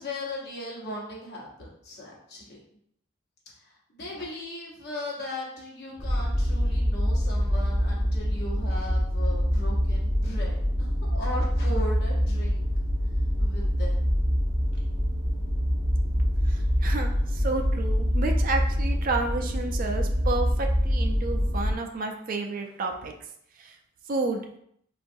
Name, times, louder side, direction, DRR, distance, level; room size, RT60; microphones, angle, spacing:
voice 1, 0.0-2.6 3.5-12.6 13.4-14.0, left 1 dB, 50° left, -4 dB, 0.9 m, -38 dB
sound 1, 6.0-21.7, equal, 15° right, 1.2 m, -25 dB
voice 2, 16.5-23.1 23.6-23.7 24.1-24.4, right 3 dB, 40° right, 3 dB, 0.4 m, -31 dB
3.7 x 2.3 x 2.6 m, 0.70 s
head